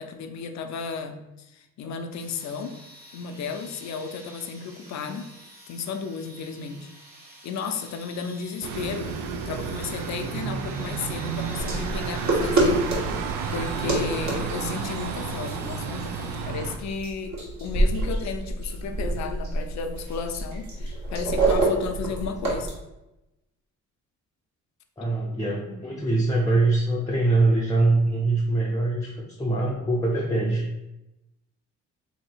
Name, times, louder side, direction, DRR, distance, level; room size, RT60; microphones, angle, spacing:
voice 1, 0.0-2.8 3.1-5.3 5.7-6.9 7.4-12.9 13.5-17.3 17.6-22.7, left 5 dB, 65° left, 7 dB, 0.5 m, -34 dB
sound 1, 2.1-16.9, right 2 dB, 30° right, 1.3 m, -48 dB
sound 2, 8.6-16.8, right 6 dB, 85° right, 0.5 m, -32 dB
sound 3, 11.6-22.7, right 2 dB, 65° right, 1.4 m, -27 dB
voice 2, 13.5-13.9 15.8-16.0 25.0-30.6, right 2 dB, 10° left, -3 dB, 0.6 m, -23 dB
2.8 x 2.6 x 4.4 m, 0.94 s
cardioid pair, 90°, 30 cm